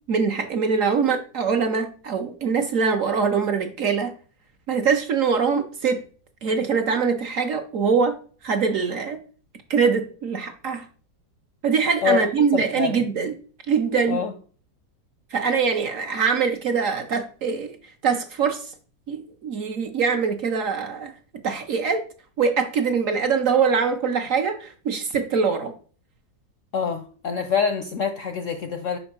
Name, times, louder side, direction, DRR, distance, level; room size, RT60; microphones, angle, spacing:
voice 1, 0.1-4.1 4.7-6.0 6.4-8.2 8.4-9.2 9.7-10.9 11.6-13.3 13.7-14.2 15.3-17.8 18.0-18.7 19.1-21.1 21.4-22.0 22.4-25.7, right 5 dB, 55° right, 1.0 m, -23 dB
voice 2, 12.5-13.1 14.1-14.3 26.7-29.0, left 6 dB, 65° left, 0.8 m, -25 dB
5.5 x 5.4 x 5.9 m
omnidirectional pair, 2.0 m